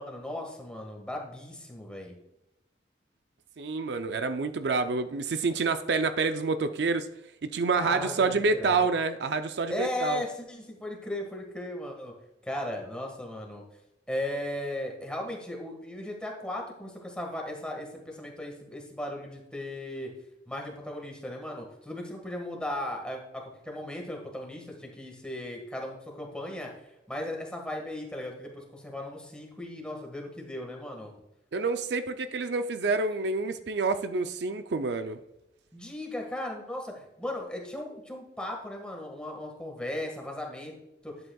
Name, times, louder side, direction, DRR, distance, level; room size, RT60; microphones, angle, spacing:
voice 1, 0.0-2.2 7.7-8.8 9.7-12.1 12.4-13.6 14.1-20.1 20.5-31.1 35.7-40.7 41.0-41.1, left 1 dB, 5° left, 1 dB, 1.6 m, -37 dB
voice 2, 3.6-7.1 7.4-10.2 31.5-35.2, right 4 dB, 70° right, 9 dB, 0.5 m, -28 dB
11.0 x 7.9 x 2.3 m, 0.89 s
head